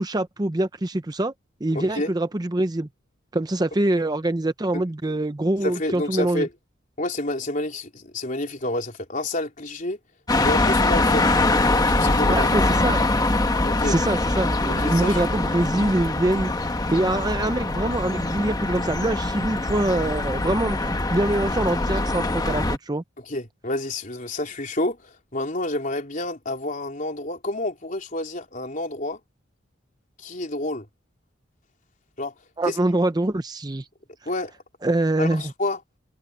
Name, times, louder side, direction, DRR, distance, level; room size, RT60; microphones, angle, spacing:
voice 1, 0.0-1.3 1.6-2.9 3.3-6.5 12.2-13.0 13.8-16.5 16.9-23.0 32.6-33.8 34.8-35.4, right 1 dB, 20° right, 0.6 m, -24 dB
voice 2, 1.7-2.1 4.7-4.8 5.6-6.5 7.0-10.0 10.4-11.3 11.9-12.5 13.6-13.9 14.8-15.2 23.3-29.2 30.2-30.9 32.2-32.3 32.6-32.8 34.3-34.5 35.2-35.8, left 1 dB, 40° left, 3.9 m, -29 dB
sound 1, 10.3-22.8, left 2 dB, 20° left, 1.1 m, -23 dB
head